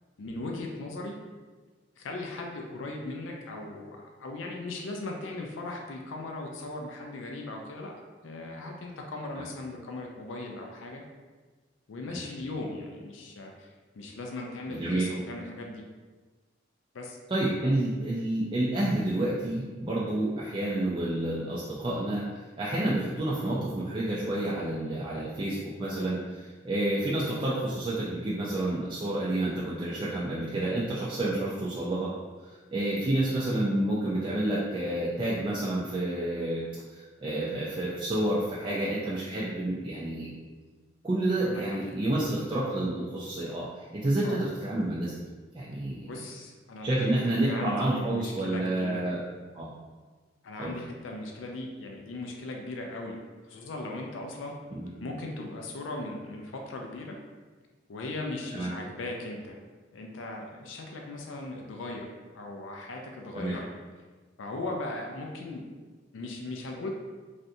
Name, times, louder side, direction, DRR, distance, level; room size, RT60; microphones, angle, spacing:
voice 1, 0.2-1.2 2.0-7.9 8.2-11.0 11.9-13.7 14.0-15.8 16.9-17.2 17.6-17.8 38.6-38.8 41.3-41.8 42.1-42.3 44.2-44.4 46.0-49.2 50.4-53.2 53.4-54.5 55.0-57.2 57.9-59.6 59.9-62.1 62.3-63.7 64.4-65.7 66.1-66.9, left 2 dB, 75° left, 1 dB, 0.4 m, -38 dB
voice 2, 14.7-15.1 17.3-22.2 22.6-32.1 32.4-36.6 36.9-40.3 41.0-45.1 45.5-46.1 46.8-49.2 49.5-49.7 50.6-50.7 54.7-54.9 58.5-58.7 63.3-63.5, right 1 dB, 25° right, -7 dB, 0.4 m, -29 dB
3.3 x 2.6 x 2.6 m, 1.4 s
head